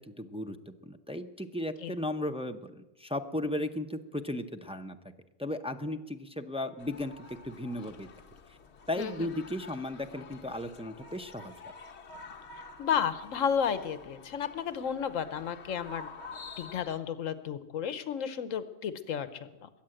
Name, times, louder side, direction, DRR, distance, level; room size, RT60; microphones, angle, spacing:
voice 1, 0.0-5.0 5.4-8.1 8.5-8.6 8.9-11.5, left 1 dB, 10° right, 6 dB, 0.4 m, -36 dB
sound 1, 6.8-17.0, left 4 dB, 60° left, 1.2 m, -49 dB
voice 2, 9.0-9.3 12.5-16.1 16.6-19.7, left 7 dB, 75° left, 13 dB, 1.2 m, -33 dB
21.5 x 8.7 x 7.7 m, 1.0 s
omnidirectional pair, 1.4 m